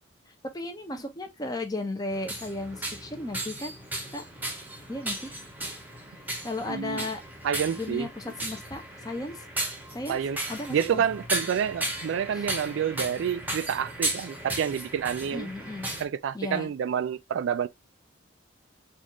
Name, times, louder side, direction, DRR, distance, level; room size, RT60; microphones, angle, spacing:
voice 1, 0.5-3.7 4.1-4.2 4.9-5.3 6.4-7.2 7.7-9.4 9.9-10.2 10.5-11.0 12.3-12.5 15.2-15.9 16.3-16.7, left 2 dB, 20° left, 0.7 m, -35 dB
sound 1, 2.1-16.1, right 1 dB, 10° right, 0.9 m, -35 dB
voice 2, 6.7-7.0 7.4-8.1 10.1-10.4 10.7-15.5 16.0-17.7, right 8 dB, 70° right, 0.3 m, -28 dB
4.1 x 2.5 x 2.9 m
head